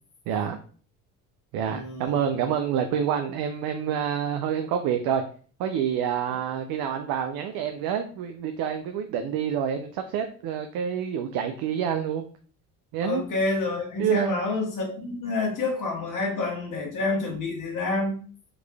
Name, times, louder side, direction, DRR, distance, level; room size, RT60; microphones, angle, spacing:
voice 1, 0.3-0.6 1.5-5.2 5.6-12.3 12.9-13.2 14.0-14.4, right 8 dB, 55° right, 6 dB, 0.5 m, -27 dB
voice 2, 1.6-2.1 13.0-18.2, left 3 dB, 45° left, -1 dB, 1.5 m, -28 dB
3.7 x 3.0 x 2.2 m, 0.42 s
hypercardioid pair, 60°, 44 cm